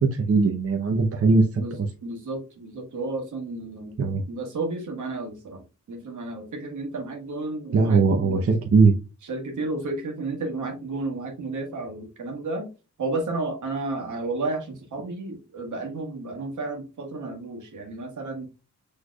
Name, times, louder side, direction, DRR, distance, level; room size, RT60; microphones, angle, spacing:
voice 1, 0.0-1.5 4.0-4.2 7.7-8.9, right 4 dB, 50° right, 3 dB, 0.7 m, -19 dB
voice 2, 2.0-4.0 4.3-8.4 9.2-12.7 13.0-18.4, right 2 dB, 90° right, 2 dB, 1.4 m, -32 dB
6.1 x 3.3 x 2.3 m, 0.31 s
cardioid pair, 90°, 30 cm